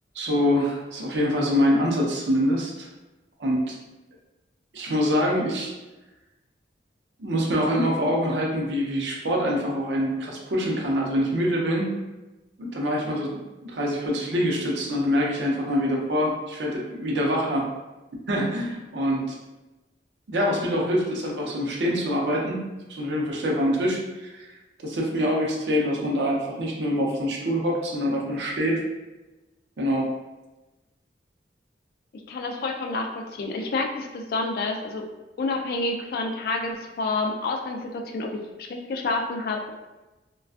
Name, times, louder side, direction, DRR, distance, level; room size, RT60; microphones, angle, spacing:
voice 1, 0.1-2.9 3.4-3.8 4.7-5.7 7.2-11.9 12.6-17.6 18.3-19.4 20.3-22.6 22.9-24.6 24.8-28.8 29.8-30.1, equal, 80° right, -2 dB, 0.5 m, -25 dB
voice 2, 32.1-35.1 35.4-38.4 38.7-39.7, left 3 dB, 55° left, 2 dB, 0.3 m, -29 dB
2.4 x 2.2 x 2.3 m, 1.1 s
head